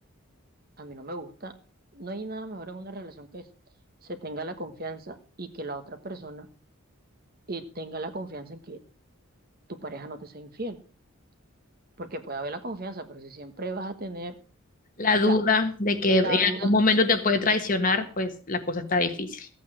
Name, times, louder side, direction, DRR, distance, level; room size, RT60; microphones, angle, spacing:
voice 1, 0.8-1.5 1.9-3.5 4.0-6.5 7.5-8.8 9.7-10.8 12.0-14.3 15.3-15.4 16.1-16.7, right 2 dB, 45° right, 8 dB, 1.4 m, -36 dB
voice 2, 15.0-19.5, left 3 dB, 40° left, 7 dB, 1.4 m, -23 dB
15.0 x 8.4 x 6.2 m, 0.39 s
head